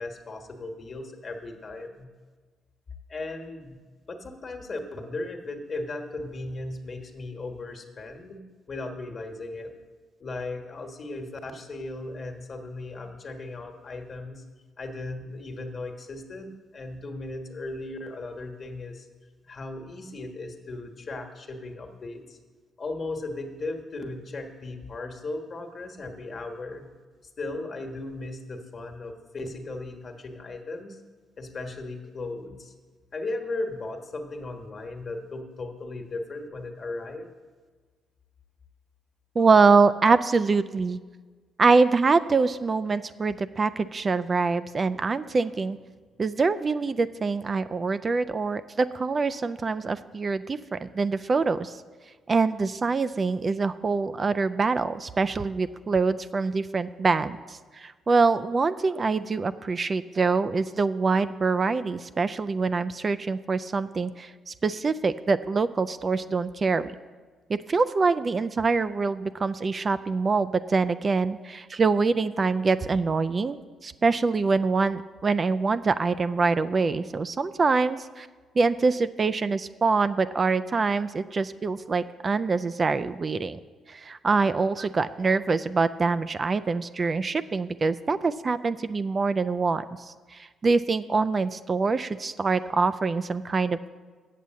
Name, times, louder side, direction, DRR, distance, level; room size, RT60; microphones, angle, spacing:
voice 1, 0.0-2.1 3.1-3.8 4.1-9.7 10.2-14.4 14.8-19.1 19.5-22.4 22.8-26.9 27.4-31.0 31.4-32.7 33.1-37.3, left 2 dB, 45° left, 4 dB, 1.3 m, -36 dB
voice 2, 39.4-41.0 41.6-45.8 46.2-51.8 52.3-66.9 67.5-73.6 73.8-78.3 78.6-83.6 83.9-93.9, right 4 dB, 35° right, 13 dB, 0.3 m, -25 dB
8.4 x 7.0 x 7.5 m, 1.4 s
cardioid pair, 90°, 0 cm